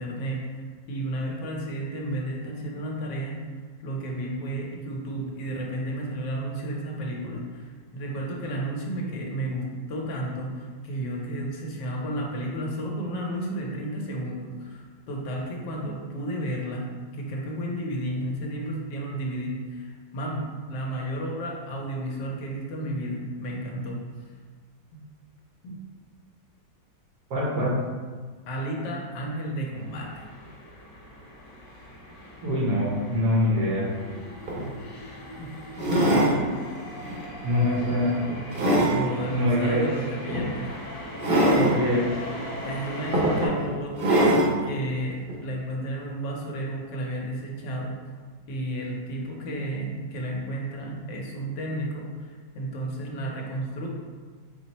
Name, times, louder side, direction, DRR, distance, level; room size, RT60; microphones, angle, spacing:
voice 1, 0.0-3.4 3.8-24.0 24.9-25.0 25.6-25.8 28.5-30.3 34.6-34.7 35.3-36.3 38.8-41.0 41.5-41.7 42.6-44.2 44.6-47.9 48.5-53.9, right 1 dB, 80° left, -1 dB, 1.3 m, -32 dB
voice 2, 27.3-27.7 32.4-33.9 37.4-38.2 39.3-39.9 41.5-42.1, left 1 dB, 70° right, -5 dB, 1.6 m, -24 dB
sound 1, 29.7-43.5, left 1 dB, 55° left, 1.2 m, -40 dB
sound 2, 34.1-34.2 34.5-34.7 35.8-36.4 37.0-37.2 37.8-39.0 40.3-40.5 41.2-41.7 42.6-42.7 43.1-43.6 44.0-44.5 45.3-45.4, right 1 dB, 90° right, 0.4 m, -22 dB
4.3 x 2.1 x 4.0 m, 1.5 s
omnidirectional pair, 1.9 m